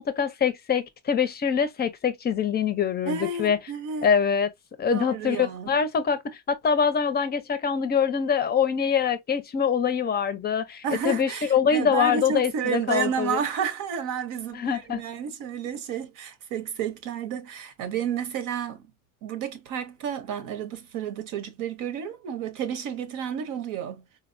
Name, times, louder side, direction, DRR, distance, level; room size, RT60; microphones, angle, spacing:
voice 1, 0.0-3.6 4.0-4.5 4.8-13.4 14.5-15.0, left 7 dB, 30° left, 0.5 m, -24 dB
voice 2, 3.0-4.1 4.9-5.7 10.8-18.9 19.2-24.0, right 7 dB, 75° right, 0.9 m, -31 dB
4.0 x 2.0 x 2.5 m
cardioid pair, 130°, 33 cm